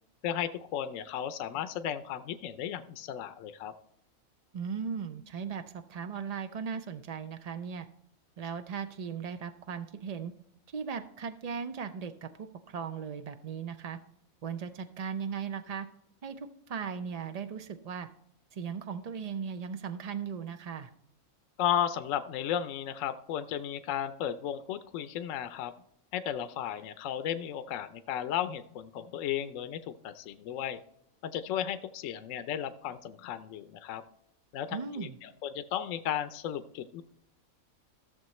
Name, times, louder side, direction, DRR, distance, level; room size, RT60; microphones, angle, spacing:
voice 1, 0.2-3.7 21.6-25.7 26.1-30.8 31.2-34.0 34.5-37.0, left 10 dB, 70° left, 11 dB, 0.9 m, -34 dB
voice 2, 4.5-7.9 8.4-10.3 10.7-14.0 14.4-15.9 16.2-18.1 18.5-20.9 34.7-35.2, right 6 dB, 90° right, 9 dB, 0.3 m, -37 dB
14.5 x 6.7 x 3.1 m, 0.75 s
omnidirectional pair, 1.5 m